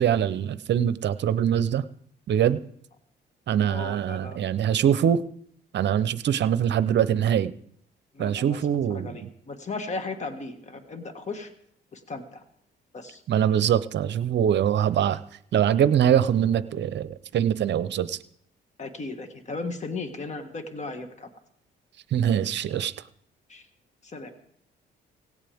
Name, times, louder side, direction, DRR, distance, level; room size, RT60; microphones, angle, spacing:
voice 1, 0.0-1.8 2.3-2.6 3.5-5.2 5.7-7.5 8.2-9.3 13.3-15.2 15.5-18.2 22.1-22.9, right 9 dB, 60° right, 15 dB, 0.7 m, -23 dB
voice 2, 3.7-4.4 8.1-11.5 11.9-12.4 12.9-13.2 18.8-21.3 23.5-23.6 24.0-24.3, left 3 dB, 35° left, 7 dB, 1.9 m, -36 dB
17.5 x 17.0 x 3.6 m, 0.66 s
cardioid pair, 90°, 20 cm